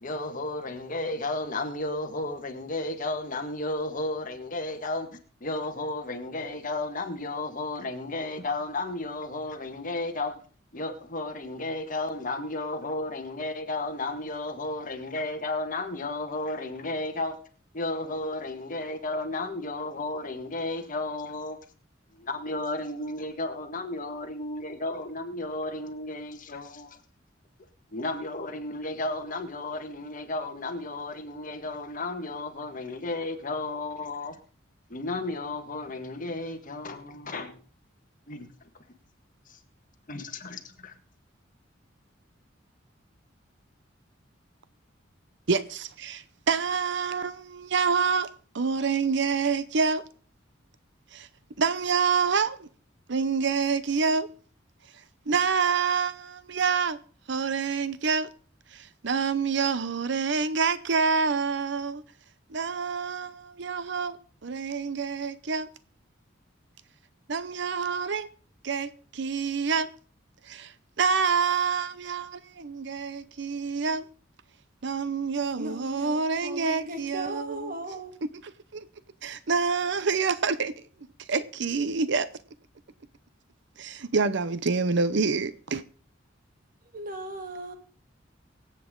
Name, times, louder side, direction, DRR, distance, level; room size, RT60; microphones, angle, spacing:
voice 1, 0.0-10.4 10.7-17.4 17.7-21.6 22.1-27.0 27.9-34.4 34.9-37.6 38.3-38.5 39.5-39.6 40.1-41.0, left 2 dB, 45° left, 1.8 m, -33 dB
voice 2, 45.5-48.3 48.5-50.0 51.1-51.3 51.6-52.7 53.1-54.3 54.9-57.0 57.3-58.3 58.7-62.0 62.5-65.7 67.3-68.3 68.6-69.9 70.4-74.1 74.8-77.7 78.7-78.8 79.2-80.7 81.2-82.3 83.8-85.8, right 5 dB, 65° right, 0.7 m, -27 dB
voice 3, 75.6-78.2 86.8-87.7, right 1 dB, 45° right, 2.1 m, -37 dB
24.0 x 8.4 x 3.8 m
head